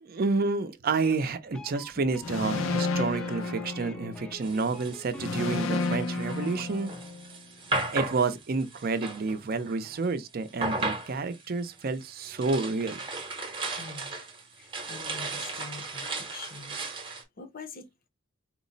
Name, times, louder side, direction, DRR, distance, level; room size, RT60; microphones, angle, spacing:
voice 1, 0.0-6.9 7.9-13.0, right 3 dB, 50° right, 0.5 m, -29 dB
sound 1, 1.0-6.0, left 1 dB, 5° left, 0.4 m, -46 dB
sound 2, 2.2-4.4 5.2-7.4, left 3 dB, 85° left, 0.6 m, -31 dB
sound 3, 4.4-10.1 10.5-17.2, right 2 dB, 25° right, 0.8 m, -36 dB
voice 2, 13.7-14.2 14.5-16.8 17.4-18.1, left 4 dB, 45° left, 0.7 m, -45 dB
4.5 x 2.0 x 3.9 m
head